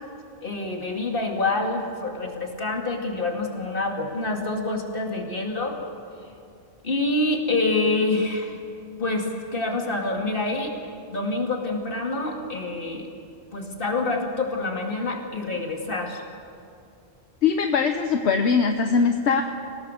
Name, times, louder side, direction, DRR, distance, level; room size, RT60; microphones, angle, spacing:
voice 1, 0.4-5.8 6.8-8.6 9.0-10.8 11.1-13.1 13.5-16.2, left 2 dB, 55° left, 1 dB, 2.7 m, -26 dB
voice 2, 17.4-19.4, left 5 dB, 75° left, 5 dB, 1.2 m, -21 dB
26.5 x 17.5 x 6.6 m, 2.5 s
omnidirectional pair, 1.1 m